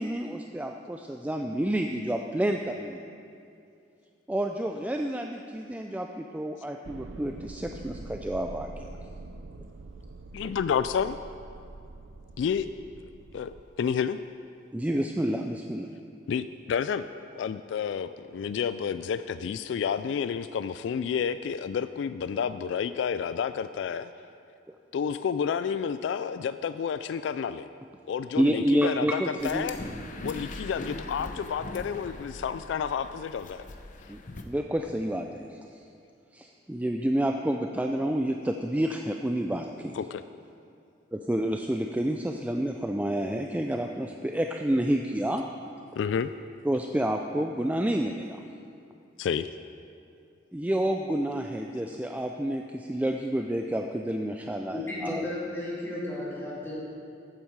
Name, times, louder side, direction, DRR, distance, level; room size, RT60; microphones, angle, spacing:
voice 1, 0.0-3.0 4.3-8.9 14.7-15.9 24.7-24.8 28.4-29.7 34.1-35.8 36.3-40.0 41.1-45.4 46.6-48.4 50.5-55.3, right 1 dB, 10° right, 4 dB, 0.3 m, -29 dB
sound 1, 6.8-13.6, right 2 dB, 80° right, 0.5 m, -44 dB
voice 2, 10.3-11.2 12.4-12.7 13.3-14.2 16.3-24.1 24.9-27.7 28.1-29.8 30.2-33.7 39.9-40.2 46.0-46.3 49.2-49.5, left 7 dB, 70° left, 12 dB, 0.3 m, -30 dB
sound 2, 29.4-34.4, left 2 dB, 45° left, 0.8 m, -41 dB
voice 3, 54.7-56.8, left 1 dB, 15° left, -7 dB, 2.9 m, -34 dB
13.5 x 9.1 x 4.7 m, 2.5 s
head